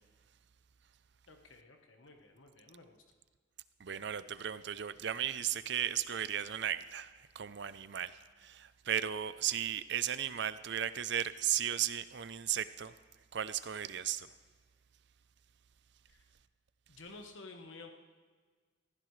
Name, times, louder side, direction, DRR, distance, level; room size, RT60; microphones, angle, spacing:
voice 1, 1.3-3.0 16.1-16.2 16.9-17.9, left 3 dB, 85° left, 3 dB, 1.3 m, -52 dB
voice 2, 3.8-12.9 13.3-14.3, right 10 dB, 60° right, 14 dB, 0.5 m, -35 dB
19.5 x 15.0 x 3.3 m, 1.5 s
head